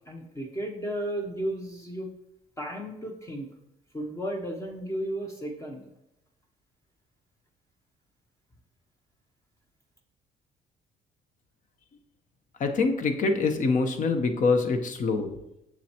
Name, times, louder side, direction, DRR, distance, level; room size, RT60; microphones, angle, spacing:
voice 1, 0.1-2.1 2.6-3.5 3.9-5.9, right 1 dB, 15° left, 1 dB, 0.8 m, -34 dB
voice 2, 12.6-15.3, left 4 dB, 50° left, 6 dB, 0.9 m, -25 dB
7.4 x 6.3 x 2.9 m, 0.85 s
cardioid pair, 110°, 17 cm